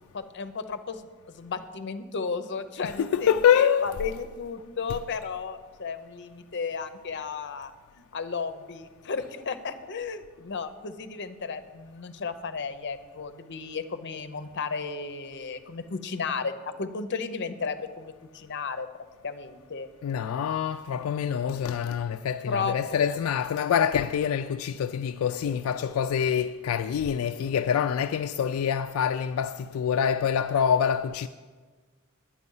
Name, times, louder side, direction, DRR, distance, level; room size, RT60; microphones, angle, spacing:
voice 1, 0.0-18.9 19.2-19.9 22.5-23.2, left 5 dB, 55° left, 0.7 m, -34 dB
voice 2, 2.8-4.0 20.0-31.3, left 8 dB, 80° left, 0.3 m, -26 dB
10.5 x 8.4 x 5.5 m
head